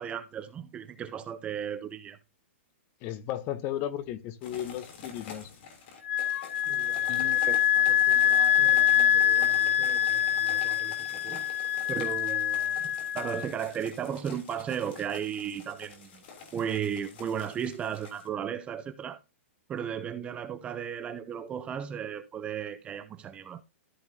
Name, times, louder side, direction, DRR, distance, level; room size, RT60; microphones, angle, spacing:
voice 1, 0.0-2.2 6.7-11.5 11.9-12.9 13.1-16.2 16.5-19.2 19.7-23.6, right 8 dB, 15° right, 0.6 m, -36 dB
voice 2, 3.0-5.5 7.1-7.6, left 11 dB, 30° left, 1.0 m, -35 dB
sound 1, 4.4-18.3, left 6 dB, 50° left, 3.2 m, -47 dB
Wind instrument woodwind instrument, 6.1-13.5, left 10 dB, 80° left, 0.4 m, -25 dB
14.0 x 5.6 x 2.8 m
hypercardioid pair, 155°, 7 cm